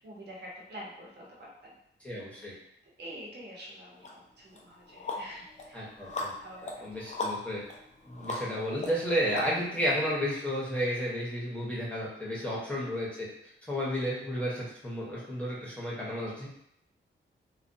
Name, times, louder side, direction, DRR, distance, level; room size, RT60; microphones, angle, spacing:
voice 1, 0.0-1.8 2.1-2.2 2.5-2.6 3.0-5.9 6.3-6.9 12.2-12.6, equal, 55° right, -3 dB, 0.9 m, -47 dB
voice 2, 2.0-2.5 5.7-6.3 6.8-7.6 8.0-13.3 13.7-16.5, equal, 5° left, -7 dB, 0.9 m, -32 dB
sound 1, 4.0-4.1 4.6-9.9, left 3 dB, 35° left, 0.5 m, -39 dB
2.4 x 2.3 x 2.6 m, 0.75 s
wide cardioid pair, 100°, 20 cm